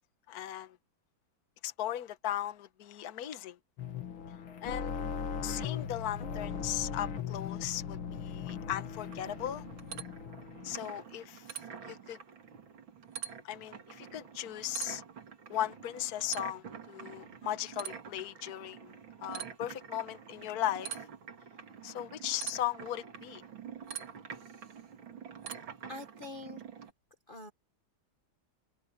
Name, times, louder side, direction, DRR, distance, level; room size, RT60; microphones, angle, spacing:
voice 1, 0.3-0.8 1.6-3.6 4.6-4.9 5.4-9.6 10.6-11.6 11.9-12.2 13.4-15.0 15.5-21.1 21.8-23.4, left 12 dB, 55° left, 1.5 m, -37 dB
sound 1, 3.8-10.8, left 7 dB, 90° left, 2.5 m, -39 dB
sound 2, 8.5-26.9, right 7 dB, 75° right, 2.9 m, -46 dB
voice 2, 24.3-24.8 25.9-26.6 27.3-27.5, left 2 dB, 25° left, 1.5 m, -46 dB
omnidirectional pair, 2.2 m